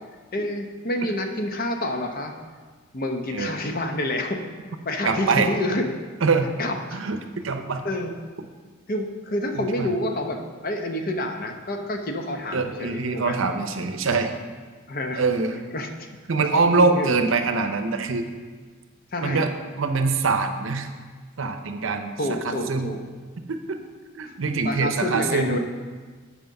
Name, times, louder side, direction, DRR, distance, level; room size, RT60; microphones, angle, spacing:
voice 1, 0.3-2.3 2.9-5.9 6.6-7.0 7.8-8.1 8.9-13.4 14.9-15.2 15.5-16.1 16.4-17.1 19.1-19.5 22.2-23.0 24.6-25.6, left 1 dB, 45° left, 4 dB, 0.8 m, -28 dB
voice 2, 5.0-5.5 6.2-6.5 6.9-7.2 7.4-7.8 9.6-9.9 12.5-14.3 15.2-15.6 16.3-18.3 19.2-19.5 19.8-20.9 21.4-22.2 22.4-22.9 23.5-23.8 24.1-25.6, right 4 dB, 75° right, 7 dB, 0.7 m, -24 dB
8.0 x 5.0 x 6.4 m, 1.5 s
head